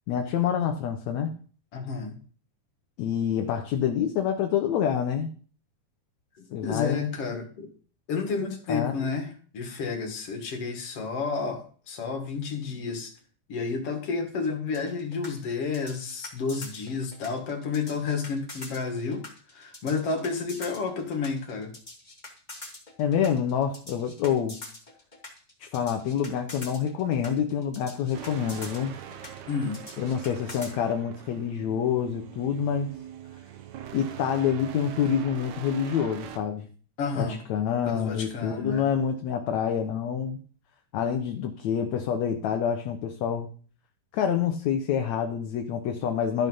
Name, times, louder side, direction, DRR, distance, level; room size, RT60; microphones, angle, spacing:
voice 1, 0.1-1.3 3.0-5.3 6.5-7.2 8.7-9.0 23.0-24.6 25.6-28.9 30.0-32.9 33.9-36.7 37.2-40.4 40.9-43.5 44.1-46.5, left 8 dB, 70° left, 5 dB, 2.1 m, -27 dB
voice 2, 1.7-2.2 6.6-7.7 8.1-13.1 13.5-19.2 19.5-21.7 29.5-29.8 37.0-37.4 37.9-38.9, left 5 dB, 50° left, 3 dB, 2.6 m, -31 dB
sound 1, 14.7-30.7, left 2 dB, 15° left, 2.1 m, -44 dB
sound 2, 28.1-36.4, right 9 dB, 70° right, 2.2 m, -42 dB
13.5 x 5.7 x 5.5 m, 0.43 s
omnidirectional pair, 3.6 m